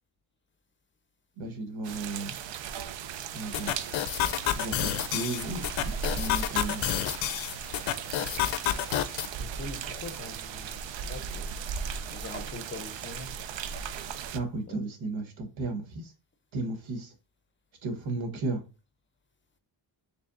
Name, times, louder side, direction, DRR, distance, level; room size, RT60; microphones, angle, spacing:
voice 1, 1.4-2.4 3.3-3.7 4.5-6.8 14.3-16.1 16.5-17.1 17.8-18.6, right 2 dB, 90° right, 1.2 m, -34 dB
sound 1, 1.8-14.4, right 7 dB, 70° right, 0.5 m, -37 dB
sound 2, 3.5-9.3, left 11 dB, 85° left, 0.6 m, -30 dB
voice 2, 9.4-11.5 12.1-13.3 14.7-14.8, left 3 dB, 25° left, 0.5 m, -43 dB
4.8 x 3.4 x 2.5 m
wide cardioid pair, 155°, 46 cm